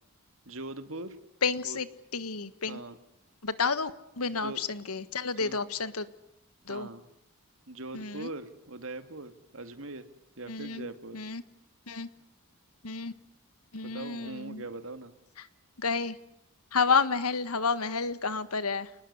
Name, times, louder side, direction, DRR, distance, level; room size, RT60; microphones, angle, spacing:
voice 1, 0.5-1.2 1.6-1.8 2.7-3.0 4.4-4.6 5.0-5.1 5.4-5.6 6.7-7.1 7.7-10.1 10.4-11.2 13.8-15.1, right 2 dB, 65° right, 10 dB, 2.2 m, -41 dB
voice 2, 1.4-1.9 2.1-2.8 3.4-6.1 6.7-6.9 7.9-8.3 10.5-11.4 11.9-12.1 12.8-13.1 13.7-14.6 15.4-15.5 15.8-16.2 16.7-18.9, left 5 dB, 90° left, 14 dB, 1.6 m, -30 dB
29.5 x 19.5 x 9.8 m, 0.79 s
head